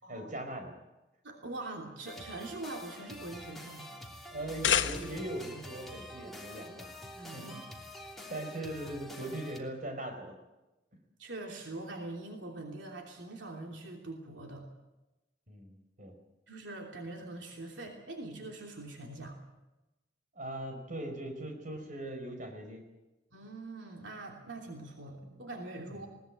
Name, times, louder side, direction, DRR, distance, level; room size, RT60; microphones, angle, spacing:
voice 1, 0.1-0.7 4.3-6.9 7.3-7.6 8.3-10.3 15.5-16.2 20.3-22.8 25.2-25.4 25.9-26.1, right 1 dB, 45° right, 4 dB, 5.0 m, -40 dB
voice 2, 1.2-3.9 7.1-7.5 11.2-14.6 16.5-19.4 23.3-26.1, right 2 dB, 80° right, 1 dB, 3.1 m, -43 dB
sound 1, 2.1-9.6, left 1 dB, ahead, 3.0 m, -47 dB
sound 2, 4.3-5.5, left 8 dB, 75° left, 1.1 m, -30 dB
20.5 x 18.0 x 8.9 m, 1.0 s
head